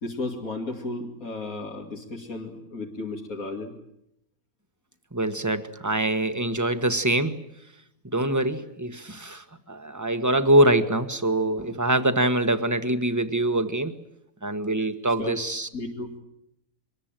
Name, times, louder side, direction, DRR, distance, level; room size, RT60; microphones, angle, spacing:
voice 1, 0.0-3.7 15.2-15.4 15.7-16.1, left 2 dB, 80° left, -1 dB, 3.1 m, -34 dB
voice 2, 5.1-7.4 8.1-13.9 14.4-15.7, right 1 dB, 15° right, 9 dB, 1.3 m, -24 dB
24.5 x 21.5 x 9.0 m, 0.79 s
omnidirectional pair, 1.5 m